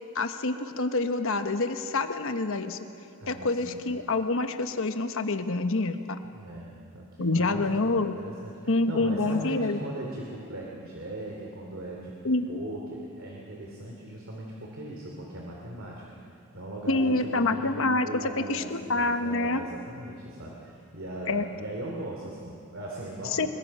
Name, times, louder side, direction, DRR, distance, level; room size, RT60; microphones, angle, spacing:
voice 1, 0.1-2.8 3.3-6.2 7.2-8.1 8.7-9.8 12.2-12.5 16.9-18.1 18.4-19.6 21.3-21.4 23.3-23.5, left 2 dB, 65° left, 8 dB, 1.2 m, -27 dB
voice 2, 3.2-3.8 6.3-12.1 12.5-23.5, right 1 dB, 65° right, -2 dB, 3.0 m, -39 dB
25.0 x 22.5 x 5.6 m, 2.6 s
head